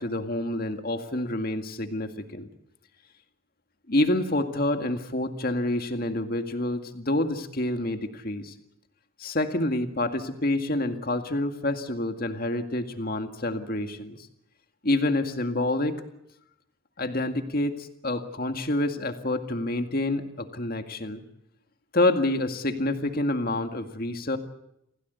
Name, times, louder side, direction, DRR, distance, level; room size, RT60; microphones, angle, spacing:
voice 1, 0.0-2.4 3.9-8.4 9.2-14.2 14.8-16.0 17.0-17.8 18.0-20.3 20.5-21.2 21.9-24.4, left 1 dB, 45° left, 6 dB, 2.0 m, -27 dB
27.5 x 17.0 x 8.2 m, 0.80 s
head